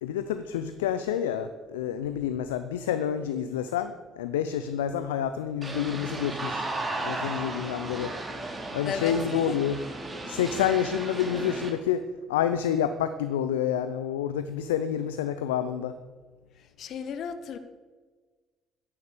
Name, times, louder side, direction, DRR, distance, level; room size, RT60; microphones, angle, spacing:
voice 1, 0.0-6.6 7.0-8.1 8.7-9.8 10.3-16.0, left 9 dB, 85° left, 11 dB, 0.6 m, -28 dB
sound 1, 5.6-11.7, right 2 dB, 25° right, 4.0 m, -35 dB
voice 2, 8.8-9.6 16.8-17.6, left 7 dB, 60° left, 11 dB, 1.2 m, -34 dB
13.5 x 10.5 x 7.1 m, 1.4 s
hypercardioid pair, 55°, 0 cm